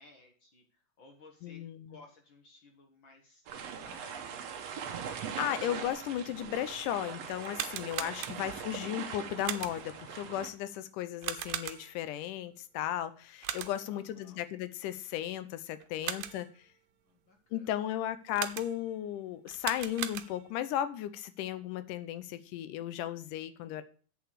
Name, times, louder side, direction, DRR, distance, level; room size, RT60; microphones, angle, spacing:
voice 1, 0.0-4.1 13.9-14.4 16.1-16.5 17.0-18.1, left 3 dB, 50° left, 3 dB, 1.5 m, -59 dB
voice 2, 1.4-2.0 5.4-16.5 17.5-23.8, left 11 dB, 80° left, 12 dB, 2.2 m, -35 dB
sound 1, 3.5-10.5, right 7 dB, 60° right, 2.0 m, -41 dB
sound 2, 7.4-8.7 9.4-10.0 11.2-12.1 13.4-14.0 15.8-16.6 18.3-19.0 19.5-20.6, right 12 dB, 85° right, 2.3 m, -39 dB
8.2 x 6.9 x 6.4 m, 0.42 s
omnidirectional pair, 3.8 m